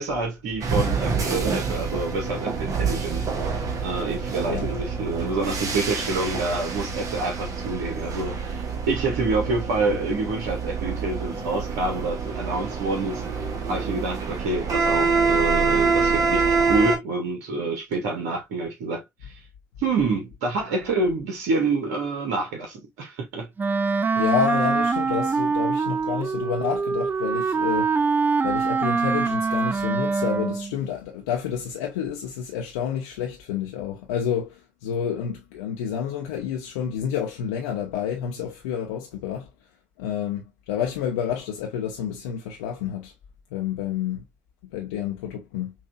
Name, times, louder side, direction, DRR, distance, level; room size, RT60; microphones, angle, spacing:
voice 1, 0.0-19.4 19.8-23.5, right 3 dB, 65° right, 1.3 m, -27 dB
sound 1, 0.6-17.0, right 4 dB, 45° right, 1.3 m, -26 dB
Wind instrument woodwind instrument, 23.6-30.7, right 4 dB, 25° right, 0.4 m, -24 dB
voice 2, 24.1-28.1 28.4-39.5 40.0-43.1 43.5-44.2 44.7-45.7, left 8 dB, 70° left, 0.6 m, -29 dB
5.6 x 2.6 x 2.2 m
figure-of-eight pair, 50°, 8 cm